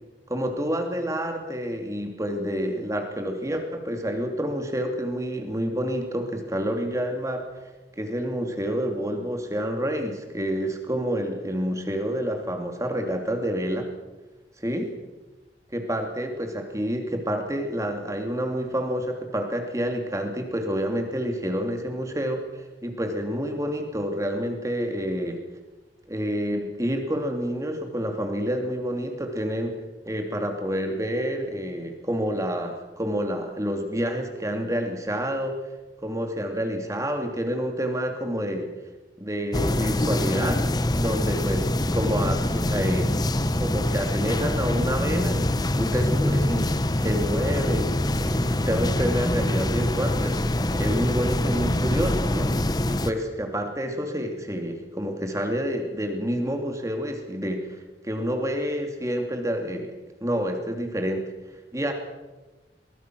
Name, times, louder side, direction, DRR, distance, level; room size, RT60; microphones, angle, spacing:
voice 1, 0.3-7.5 8.0-13.9 14.6-14.9 15.7-25.4 26.1-29.8 30.0-35.5 36.0-38.7 39.2-40.6 40.9-43.3 43.6-50.4 50.8-52.5 52.9-57.7 58.0-59.9 60.2-61.3 61.7-61.9, equal, 20° right, 4 dB, 2.7 m, -28 dB
sound 1, 39.5-53.1, left 1 dB, 25° left, 0.9 m, -24 dB
22.5 x 20.5 x 6.2 m, 1.1 s
head